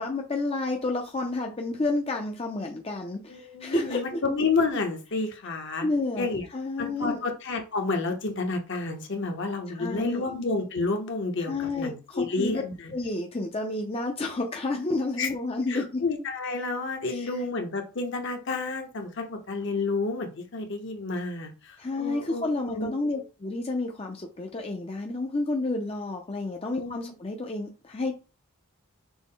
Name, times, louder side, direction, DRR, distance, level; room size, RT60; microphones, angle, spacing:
voice 1, 0.0-4.2 5.8-6.3 6.5-7.2 9.8-10.2 11.4-12.6 12.9-16.0 17.1-17.3 21.8-28.1, left 2 dB, 25° left, 2 dB, 0.5 m, -30 dB
voice 2, 3.3-5.9 6.2-6.4 6.8-12.9 15.2-15.3 15.7-23.2 26.7-27.1, left 3 dB, 55° left, 4 dB, 0.8 m, -30 dB
6.0 x 2.1 x 3.7 m, 0.32 s
head